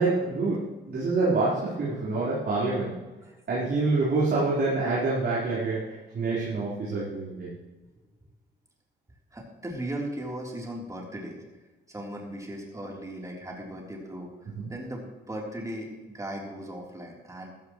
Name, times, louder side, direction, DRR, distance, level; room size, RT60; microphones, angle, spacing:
voice 1, 0.0-3.0 3.5-7.5 14.6-14.7, right 3 dB, 55° right, -7 dB, 4.3 m, -27 dB
voice 2, 9.3-11.4 11.9-17.6, right 1 dB, 15° right, -2 dB, 3.7 m, -37 dB
14.0 x 13.0 x 3.2 m, 1.2 s
cardioid pair, 90°, 20 cm